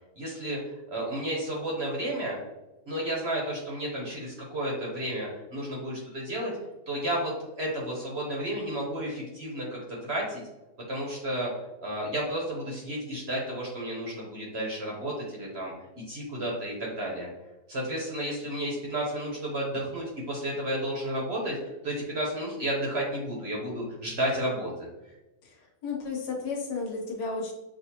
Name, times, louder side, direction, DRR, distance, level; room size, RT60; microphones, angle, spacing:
voice 1, 0.2-2.4 2.9-6.5 6.9-10.4 10.9-11.5 11.8-15.7 16.1-17.3 17.7-21.6 21.8-24.7, right 1 dB, 50° right, -2 dB, 1.0 m, -32 dB
voice 2, 25.4-27.5, left 4 dB, 75° left, -1 dB, 1.5 m, -33 dB
6.3 x 2.4 x 2.8 m, 1.0 s
omnidirectional pair, 1.8 m